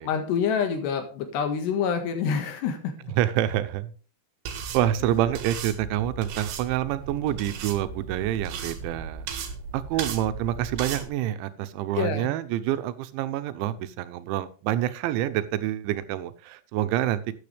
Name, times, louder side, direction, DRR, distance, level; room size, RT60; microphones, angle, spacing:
voice 1, 0.0-2.9 12.0-12.3, left 6 dB, 70° left, 6 dB, 3.7 m, -27 dB
voice 2, 3.2-3.9 4.7-9.3 9.7-17.2, right 12 dB, 90° right, 12 dB, 3.2 m, -27 dB
sound 1, 4.5-11.1, right 6 dB, 70° right, 3.3 m, -36 dB
13.5 x 9.5 x 3.4 m, 0.38 s
omnidirectional pair, 5.2 m